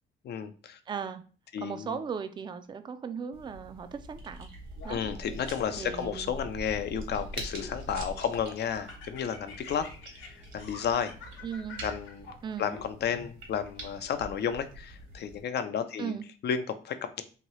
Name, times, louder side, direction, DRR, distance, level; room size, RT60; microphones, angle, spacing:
voice 1, 0.2-0.8 1.5-2.0 4.9-9.9 10.2-11.1 11.8-12.3 12.6-16.2 16.4-17.2, left 7 dB, 55° left, 10 dB, 0.5 m, -32 dB
voice 2, 0.9-1.2 1.6-4.5 4.8-5.0 5.8-6.3 11.4-11.8 12.4-12.8 16.0-16.2, right 6 dB, 25° right, 9 dB, 0.3 m, -37 dB
sound 1, 3.3-15.4, right 1 dB, 75° right, 1.2 m, -44 dB
Laughter, 4.8-6.1 6.7-7.8 8.2-13.2, left 4 dB, 75° left, 0.9 m, -48 dB
2.9 x 2.7 x 3.0 m, 0.38 s
cardioid pair, 90°, 20 cm